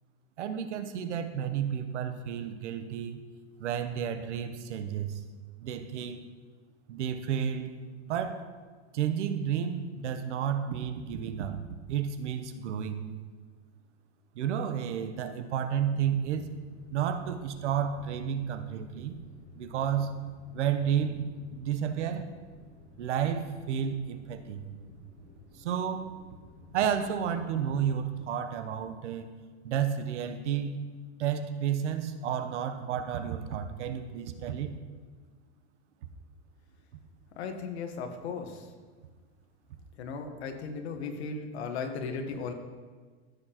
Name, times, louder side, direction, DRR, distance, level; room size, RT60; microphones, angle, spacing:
voice 1, 0.4-3.2 3.6-5.2 5.6-6.3 6.9-7.7 8.1-8.4 8.9-11.6 11.9-13.1 14.3-16.5 16.9-19.1 19.5-20.2 20.5-22.4 23.0-24.6 25.6-26.1 26.7-29.3 29.6-30.8 31.2-34.7, right 8 dB, 90° right, 9 dB, 1.0 m, -31 dB
sound 1, 15.7-28.3, left 1 dB, 20° left, 1.8 m, -53 dB
voice 2, 37.4-38.7 40.0-42.5, left 5 dB, 70° left, 5 dB, 1.4 m, -36 dB
14.5 x 6.9 x 3.0 m, 1.5 s
supercardioid pair, 175°, 34 cm